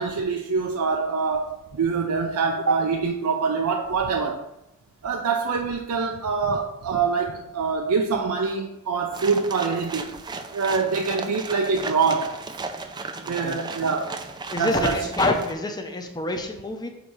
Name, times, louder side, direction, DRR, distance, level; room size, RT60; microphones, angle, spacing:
voice 1, 0.0-4.5 5.0-10.2 10.5-12.4 13.3-14.2 14.6-15.1, right 5 dB, 85° right, 3 dB, 0.5 m, -25 dB
sound 1, 9.1-15.5, right 4 dB, 20° right, 0.4 m, -35 dB
voice 2, 13.3-13.6 14.5-16.9, left 2 dB, 20° left, 4 dB, 0.7 m, -27 dB
8.0 x 2.8 x 4.6 m, 0.91 s
head